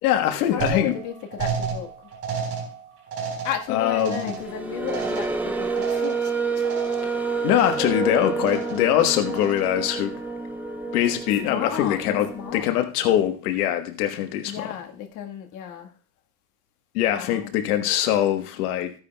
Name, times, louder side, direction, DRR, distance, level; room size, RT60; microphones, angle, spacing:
voice 1, 0.0-0.9 3.7-4.4 7.0-7.1 7.4-10.1 10.9-14.8 16.9-18.9, left 11 dB, 80° left, 1.3 m, -23 dB
voice 2, 0.5-1.9 3.4-6.3 6.6-6.7 7.8-8.1 11.4-12.7 14.4-15.9 17.1-17.5, left 9 dB, 40° left, 1.6 m, -33 dB
sound 1, 0.6-6.4 6.6-7.2 7.5-8.1 8.4-8.9 9.3-9.8, right 6 dB, 30° right, 4.2 m, -33 dB
sound 2, 4.2-12.6, right 4 dB, 5° right, 0.3 m, -29 dB
14.5 x 9.6 x 2.3 m
supercardioid pair, 155°, 44 cm